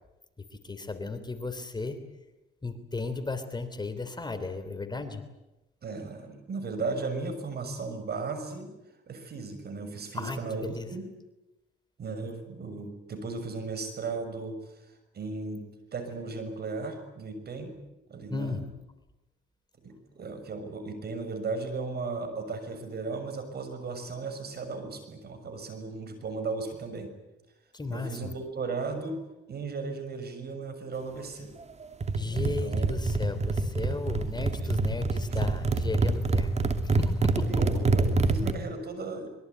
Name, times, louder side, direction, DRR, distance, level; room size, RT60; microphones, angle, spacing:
voice 1, 0.4-2.0 2.6-5.2 10.1-10.9 18.3-18.6 27.7-28.3 32.1-36.5 36.8-37.5 37.7-37.8, left 3 dB, 20° left, 9 dB, 3.3 m, -35 dB
voice 2, 5.8-8.7 9.1-11.1 12.0-17.7 18.1-18.6 19.8-27.1 27.9-29.2 29.5-31.5 32.3-32.9 34.6-34.7 35.3-35.5 37.4-39.3, right 4 dB, 55° right, 8 dB, 6.5 m, -36 dB
sound 1, 32.0-38.5, right 3 dB, 35° right, 2.7 m, -26 dB
24.5 x 22.5 x 9.5 m, 0.99 s
cardioid pair, 90°, 20 cm